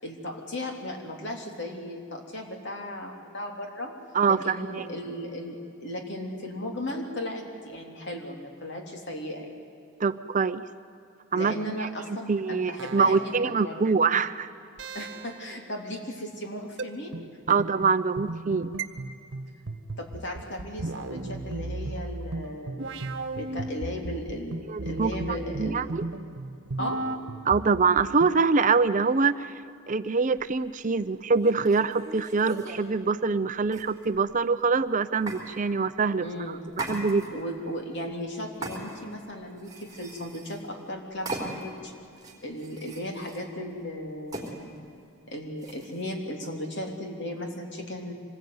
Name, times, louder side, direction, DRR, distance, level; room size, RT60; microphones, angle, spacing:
voice 1, 0.0-3.9 4.3-9.5 11.3-14.1 14.9-17.1 17.5-17.6 20.0-23.1 23.3-25.9 26.8-27.0 36.2-36.6 37.3-41.9 42.4-44.7 45.3-48.1, left 1 dB, 55° left, 2 dB, 3.3 m, -36 dB
voice 2, 4.1-4.8 10.0-10.6 11.3-11.9 12.3-14.5 17.5-18.7 24.7-25.1 25.6-26.0 27.5-29.5 29.9-36.3 36.9-37.4, right 4 dB, 35° right, 12 dB, 0.5 m, -24 dB
sound 1, 12.8-13.5 14.8-15.6 16.8-16.9 18.8-18.9 20.8-24.2 24.8-26.2 26.8-27.2, right 2 dB, 55° right, 1.3 m, -36 dB
sound 2, 17.1-28.4, right 2 dB, 85° right, 1.1 m, -38 dB
sound 3, 30.4-30.5 31.3-32.9 33.7-34.3 35.3-35.4 36.7-37.5 38.6-39.2 39.6-40.7 41.3-41.8 42.2-43.4 44.3-44.5 45.6-46.0, right 2 dB, 15° right, 3.9 m, -38 dB
25.5 x 20.5 x 9.5 m, 2.6 s
head